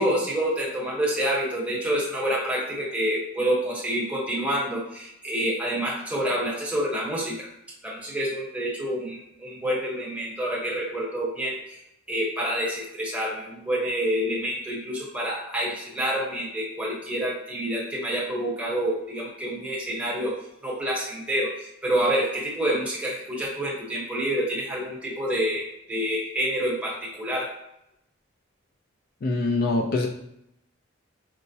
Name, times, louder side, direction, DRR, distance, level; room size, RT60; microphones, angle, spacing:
voice 1, 0.0-7.5 7.8-11.8 12.1-20.3 20.6-27.5, equal, 5° right, -5 dB, 0.9 m, -28 dB
voice 2, 29.2-30.1, left 2 dB, 45° left, 2 dB, 0.3 m, -24 dB
4.4 x 2.0 x 2.7 m, 0.80 s
head